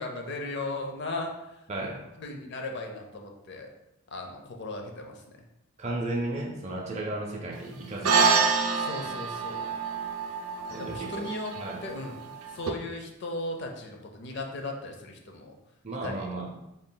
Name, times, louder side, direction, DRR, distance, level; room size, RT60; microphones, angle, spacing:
voice 1, 0.0-1.3 2.2-3.7 4.1-5.2 8.7-9.7 10.8-11.5 11.8-15.6 16.0-16.3, left 2 dB, 50° left, 3 dB, 0.5 m, -37 dB
voice 2, 1.7-2.1 5.8-8.4 10.7-11.2 11.6-11.8 15.8-16.5, right 2 dB, 30° right, -2 dB, 0.5 m, -34 dB
sound 1, 8.0-12.7, right 5 dB, 85° right, 0.5 m, -27 dB
3.8 x 2.3 x 3.8 m, 0.87 s
head